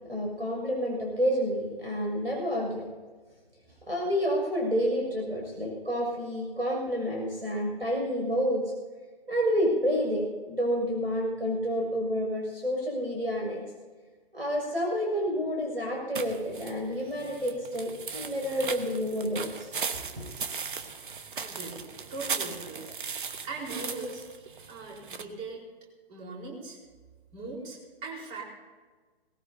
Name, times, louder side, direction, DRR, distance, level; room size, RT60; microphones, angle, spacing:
voice 1, 0.1-2.8 3.9-8.6 9.3-13.6 14.3-19.7 20.2-20.3, equal, 85° right, -1 dB, 6.5 m, -29 dB
sound 1, 16.1-25.2, right 5 dB, 55° right, 1.3 m, -37 dB
voice 2, 21.3-21.8 22.1-22.9 23.5-24.2 24.7-25.6 26.1-26.8 27.3-28.4, right 3 dB, 20° right, -2 dB, 4.4 m, -39 dB
22.0 x 19.5 x 2.8 m, 1.4 s
figure-of-eight pair, 130°, 31 cm